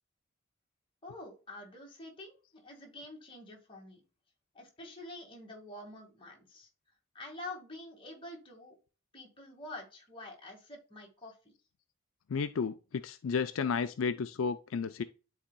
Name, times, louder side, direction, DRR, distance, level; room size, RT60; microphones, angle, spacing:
voice 1, 1.0-4.0 4.5-6.7 7.1-8.8 9.1-11.5, left 2 dB, 25° left, 1.9 m, -47 dB
voice 2, 12.3-15.0, left 5 dB, 80° left, 0.4 m, -32 dB
11.5 x 4.2 x 2.2 m
head